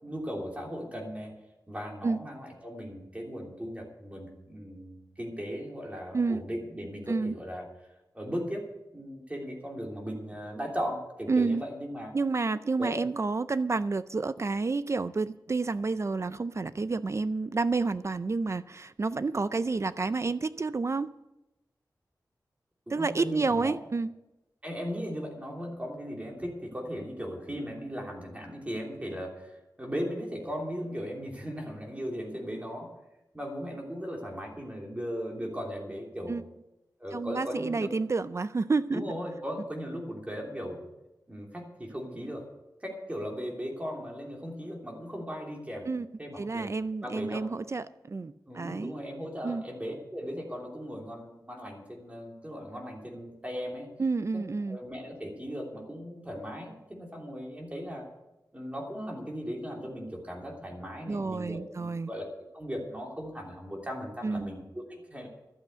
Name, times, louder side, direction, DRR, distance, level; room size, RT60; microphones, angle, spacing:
voice 1, 0.0-1.3 1.7-7.7 8.1-12.1 12.8-13.0 22.9-23.8 24.6-32.9 33.3-36.4 37.0-37.9 38.9-40.8 41.3-42.4 42.8-45.9 46.2-46.7 47.0-47.4 48.5-53.9 54.3-58.1 58.5-62.3 62.5-65.3, equal, 20° right, 0 dB, 3.1 m, -37 dB
voice 2, 11.3-11.6 12.1-21.1 22.9-24.1 36.3-36.4 37.1-39.0 45.9-46.1 46.4-48.9 49.4-49.6 54.0-54.8 61.1-62.1 64.2-64.5, right 3 dB, 40° right, 14 dB, 0.4 m, -29 dB
12.5 x 8.1 x 8.1 m, 0.95 s
wide cardioid pair, 90°, 7 cm